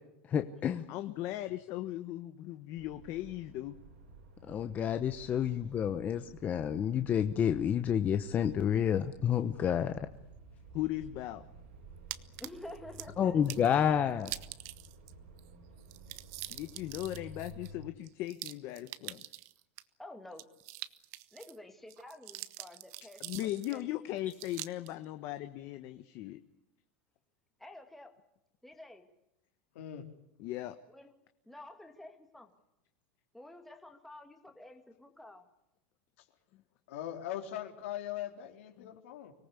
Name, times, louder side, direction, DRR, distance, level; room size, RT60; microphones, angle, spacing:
voice 1, 0.3-0.9 4.5-10.0 13.2-14.3, left 8 dB, 25° left, 8 dB, 1.0 m, -29 dB
voice 2, 0.9-3.8 10.7-11.4 16.5-19.2 23.2-26.4 30.4-30.7 38.8-38.9, left 15 dB, 40° left, 9 dB, 1.2 m, -38 dB
sound 1, 2.8-17.9, right 3 dB, 85° right, 7.5 m, -53 dB
sound 2, 12.1-13.1 13.5-13.7 14.2-15.1 15.4-15.5 15.8-19.8 20.3-21.6 21.9-23.8 24.3-24.9, right 18 dB, 45° right, 1.0 m, -44 dB
voice 3, 12.4-13.5 20.0-20.5 21.3-24.1 27.6-28.1 28.6-29.0 30.9-31.1 31.5-32.5 33.3-35.5, left 1 dB, 5° left, 5 dB, 2.0 m, -50 dB
voice 4, 29.8-30.1 36.9-39.3, left 11 dB, 75° left, 5 dB, 3.6 m, -40 dB
25.0 x 18.5 x 8.3 m, 0.86 s
supercardioid pair, 160°, 7 cm